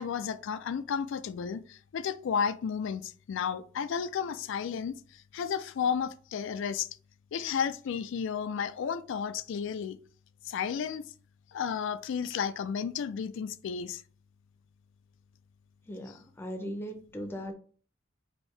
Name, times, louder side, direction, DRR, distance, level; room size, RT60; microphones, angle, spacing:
voice 1, 0.0-6.9 7.3-10.0 10.5-11.1 11.5-14.0, left 7 dB, 65° left, 0.3 m, -32 dB
voice 2, 15.9-17.5, equal, 10° left, 0.6 m, -38 dB
4.4 x 2.7 x 3.2 m
head